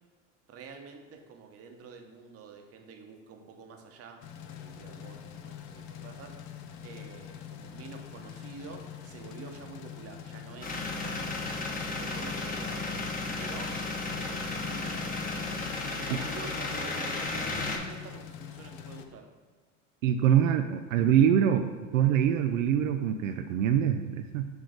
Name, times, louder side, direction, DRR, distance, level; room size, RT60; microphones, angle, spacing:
voice 1, 0.5-6.4 6.8-13.0 13.4-13.8 14.1-15.3 15.8-19.3, right 5 dB, 40° right, 4 dB, 0.9 m, -48 dB
sound 1, 4.2-19.1, left 9 dB, 55° left, 0.6 m, -44 dB
sound 2, 10.6-17.8, left 3 dB, 20° left, 1.0 m, -34 dB
voice 2, 20.0-21.7 21.9-24.5, right 9 dB, 80° right, 6 dB, 0.5 m, -24 dB
6.3 x 3.2 x 5.0 m, 1.4 s
hypercardioid pair, 90°, 38 cm